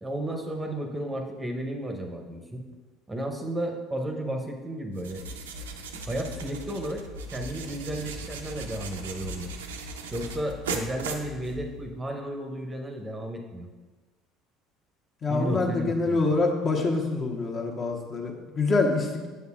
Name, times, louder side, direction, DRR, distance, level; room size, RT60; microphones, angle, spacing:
voice 1, 0.0-2.6 3.1-5.2 6.1-7.1 7.3-9.5 10.1-13.7 15.3-16.2, right 1 dB, 15° right, 3 dB, 0.8 m, -33 dB
sound 1, 4.9-11.9, right 3 dB, 75° right, 0.6 m, -38 dB
voice 2, 15.2-19.3, left 3 dB, 35° left, 1 dB, 1.1 m, -26 dB
8.1 x 7.0 x 2.4 m, 1.3 s
figure-of-eight pair, 65°, 0 cm